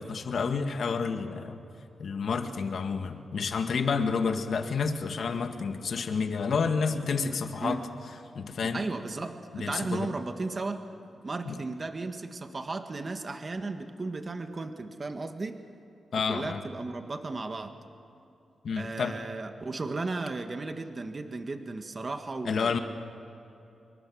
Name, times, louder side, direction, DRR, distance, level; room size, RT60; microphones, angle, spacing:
voice 1, 0.0-1.6 2.0-7.8 8.3-8.8 9.5-10.1 11.4-11.6 16.1-16.6 18.6-19.1 22.4-22.8, left 5 dB, 70° left, 6 dB, 1.7 m, -29 dB
voice 2, 8.6-10.9 11.2-15.6 16.3-17.7 18.8-22.8, right 3 dB, 40° right, 6 dB, 1.7 m, -35 dB
26.0 x 23.5 x 6.4 m, 2.8 s
cardioid pair, 90°, 0 cm